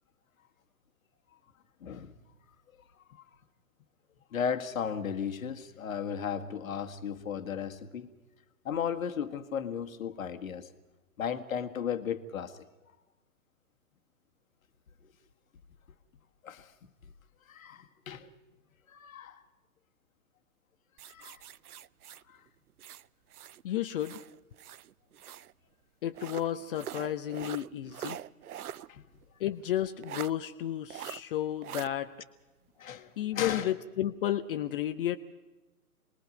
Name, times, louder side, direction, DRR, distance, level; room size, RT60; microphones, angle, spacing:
voice 1, 1.8-2.1 3.1-3.2 4.3-8.1 8.6-10.7 11.2-12.6 15.0-15.1 16.4-16.7 17.0-17.1 17.5-18.3 18.9-19.4 21.0-21.4 22.3-22.4 27.4-27.5 28.9-29.0 32.8-33.7, left 7 dB, 65° left, 1.6 m, -35 dB
sound 1, 21.0-23.6 24.0-25.5 26.1-28.9 29.2-29.3 30.0-30.3 30.9-31.2 31.6-31.9, right 11 dB, 80° right, 0.6 m, -43 dB
voice 2, 23.6-24.2 26.0-28.2 29.4-32.1 33.0-35.2, left 12 dB, 40° left, 0.8 m, -32 dB
27.5 x 20.5 x 5.2 m
hypercardioid pair, 130°, 44 cm